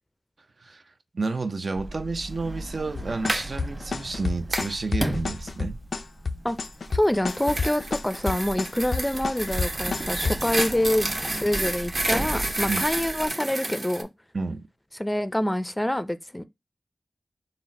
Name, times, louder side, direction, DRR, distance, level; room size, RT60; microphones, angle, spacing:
voice 1, 1.1-5.8 9.9-10.0 12.7-12.8 14.3-14.7, right 3 dB, 75° right, 0.5 m, -30 dB
Sliding door, 1.8-13.3, right 1 dB, 25° right, 1.0 m, -37 dB
sound 1, 2.9-10.7, left 4 dB, 85° left, 0.3 m, -29 dB
hommel one, 3.1-3.5 4.5-4.7 6.9-14.0, right 1 dB, 50° right, 0.8 m, -30 dB
voice 2, 6.9-14.1 15.0-16.4, left 1 dB, 15° left, 0.4 m, -26 dB
4.0 x 2.1 x 4.0 m
wide cardioid pair, 55°, 0 cm